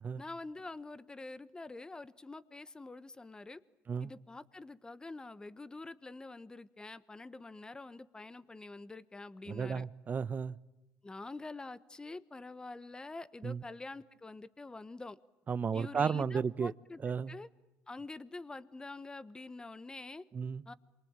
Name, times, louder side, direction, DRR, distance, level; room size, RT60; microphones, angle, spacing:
voice 1, 0.2-3.6 4.0-9.9 11.0-15.2 15.7-17.0 17.3-17.5 17.9-20.2 20.7-20.8, left 3 dB, 15° left, 1.2 m, -46 dB
voice 2, 9.5-10.6 13.4-13.6 15.5-16.7 17.0-17.3 20.3-20.6, right 6 dB, 30° right, 0.9 m, -33 dB
27.5 x 24.0 x 8.9 m
cardioid pair, 110°, 5 cm